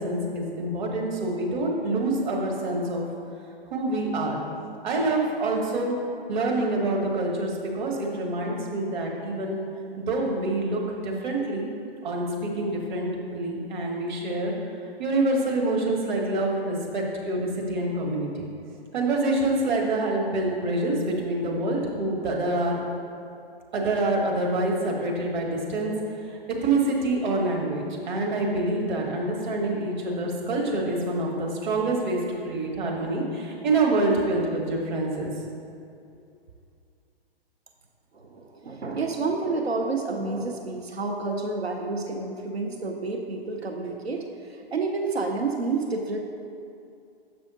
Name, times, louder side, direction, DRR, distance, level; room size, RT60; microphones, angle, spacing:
voice 1, 0.0-3.0 3.7-4.4 4.8-5.9 6.3-9.6 10.0-11.7 12.0-14.5 15.0-18.5 18.9-22.8 23.7-25.9 26.3-35.3, right 2 dB, 50° right, -1 dB, 1.4 m, -26 dB
voice 2, 38.1-46.2, right 3 dB, 85° right, 2 dB, 0.7 m, -29 dB
7.4 x 5.6 x 4.1 m, 2.5 s
figure-of-eight pair, 115°, 31 cm